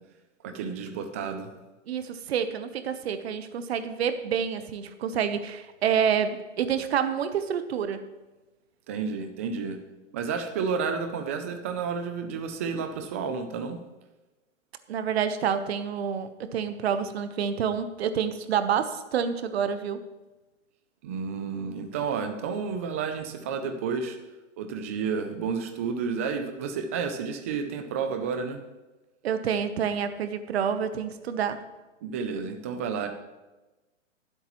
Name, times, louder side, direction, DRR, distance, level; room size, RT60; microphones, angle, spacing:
voice 1, 0.4-1.5 8.9-9.8 10.1-13.8 21.0-24.2 24.6-28.6 32.0-33.1, right 5 dB, 15° right, 6 dB, 0.3 m, -31 dB
voice 2, 1.9-8.0 14.9-20.1 29.2-31.6, right 7 dB, 55° right, 10 dB, 1.0 m, -28 dB
19.5 x 8.1 x 3.0 m, 1.1 s
hypercardioid pair, 140°, 38 cm